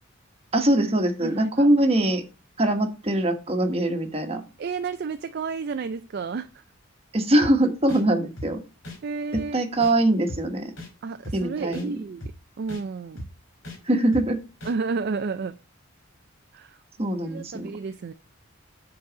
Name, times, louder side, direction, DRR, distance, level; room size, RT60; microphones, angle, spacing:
voice 1, 0.5-2.2 2.6-4.4 7.1-8.6 9.3-10.7 11.3-11.9 13.9-14.4 17.0-17.7, right 1 dB, 30° right, 1.2 m, -22 dB
voice 2, 1.2-1.7 4.6-6.5 9.0-9.6 11.0-12.3 12.6-13.3 14.6-15.6 16.5-16.8 17.2-18.1, right 4 dB, 55° right, 0.4 m, -31 dB
sound 1, 7.4-7.5 7.9-8.0 8.4-8.5 8.8-9.0 9.3-9.5 9.8-9.9 10.3-10.4 10.8-10.9 11.2-11.4 11.7-11.9 12.2-12.3 12.7-12.8 13.2-13.3 13.6-13.8 14.1-14.3 14.6-14.7, left 1 dB, 65° left, 3.5 m, -36 dB
7.8 x 4.1 x 5.0 m
head